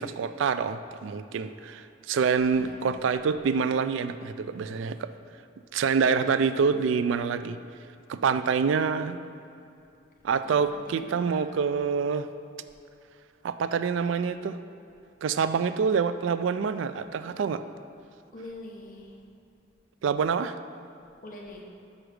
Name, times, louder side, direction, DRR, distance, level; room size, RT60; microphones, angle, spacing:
voice 1, 0.0-5.1 5.7-7.6 8.1-9.2 10.2-12.3 13.4-14.6 15.2-17.6 20.0-20.5, right 6 dB, 85° right, 12 dB, 0.3 m, -26 dB
voice 2, 2.6-3.0 10.4-11.7 18.3-19.2 21.2-21.6, left 1 dB, 45° left, 0 dB, 0.9 m, -44 dB
6.3 x 6.0 x 4.8 m, 2.6 s
head